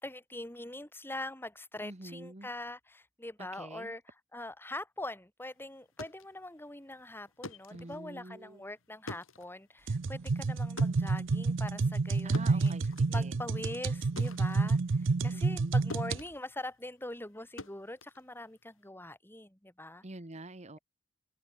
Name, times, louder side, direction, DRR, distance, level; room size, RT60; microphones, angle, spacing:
voice 1, 0.0-4.0 4.3-12.7 13.1-20.0, left 1 dB, 10° left, 5.0 m, -43 dB
voice 2, 1.8-2.5 3.5-3.9 7.7-8.6 12.2-13.4 15.3-15.8 20.0-20.8, right 2 dB, 35° right, 1.5 m, -46 dB
sound 1, 5.7-15.6 15.9-18.9, left 2 dB, 80° left, 4.3 m, -48 dB
sound 2, 9.9-16.2, right 3 dB, 65° right, 0.6 m, -29 dB
open air
head